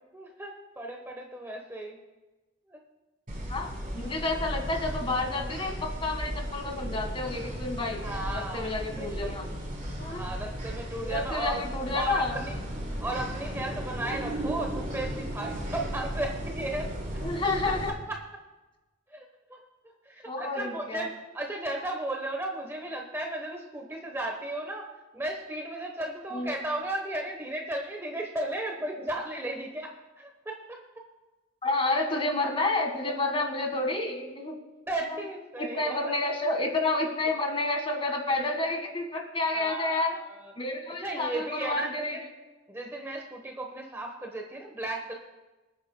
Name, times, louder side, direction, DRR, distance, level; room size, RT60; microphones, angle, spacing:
voice 1, 0.1-2.0 2.7-2.8 8.0-9.3 10.1-11.6 11.9-12.6 13.0-16.9 17.1-17.3 17.6-17.7 18.1-18.2 19.1-19.6 20.0-30.8 34.9-35.9 39.5-40.5 41.0-42.2 42.7-45.1, right 1 dB, 10° right, 1 dB, 1.0 m, -35 dB
sound 1, 3.3-17.9, equal, 40° right, 3.3 m, -35 dB
voice 2, 3.5-8.0 8.3-9.5 10.0-10.2 11.0-12.4 17.2-17.9 20.2-21.1 26.3-26.5 31.6-34.5 35.0-35.2 35.6-40.1 40.6-42.3, left 2 dB, 25° left, 3 dB, 1.6 m, -30 dB
25.5 x 9.1 x 2.2 m, 1.1 s
head